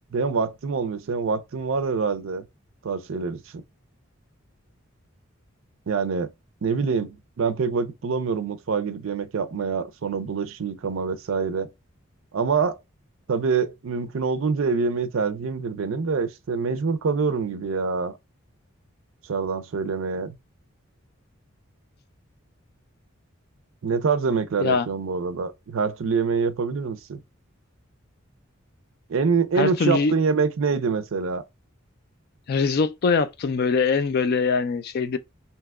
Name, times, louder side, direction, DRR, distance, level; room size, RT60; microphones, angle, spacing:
voice 1, 0.1-2.4 2.8-3.6 5.9-6.3 6.6-11.7 12.3-12.8 13.3-18.2 19.3-20.4 23.8-27.2 29.1-31.4, right 5 dB, 70° right, 0.4 m, -25 dB
voice 2, 29.6-30.1 32.5-35.2, left 4 dB, 50° left, 0.3 m, -22 dB
2.8 x 2.2 x 3.5 m
head